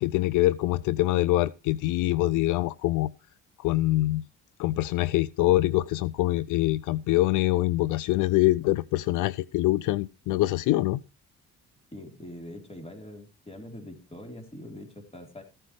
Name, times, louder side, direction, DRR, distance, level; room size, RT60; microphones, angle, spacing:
voice 1, 0.0-3.1 3.6-4.2 4.6-11.0, left 17 dB, 85° left, 0.4 m, -24 dB
voice 2, 11.9-15.4, left 1 dB, 20° left, 3.8 m, -43 dB
14.5 x 10.0 x 3.2 m
cardioid pair, 90°, 30 cm